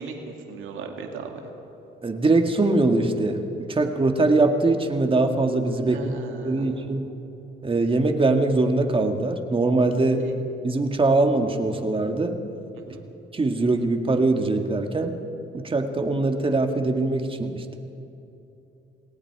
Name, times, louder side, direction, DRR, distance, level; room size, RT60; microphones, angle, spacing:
voice 1, 0.0-1.3 5.9-6.9 10.2-10.3 12.9-13.1, right 4 dB, 80° right, 2 dB, 2.4 m, -36 dB
voice 2, 2.0-6.0 6.4-7.1 7.6-10.2 10.6-12.4 13.3-15.2 15.5-17.8, right 2 dB, 25° right, 4 dB, 2.1 m, -22 dB
28.5 x 19.0 x 4.9 m, 2.9 s
cardioid pair, 90°, 20 cm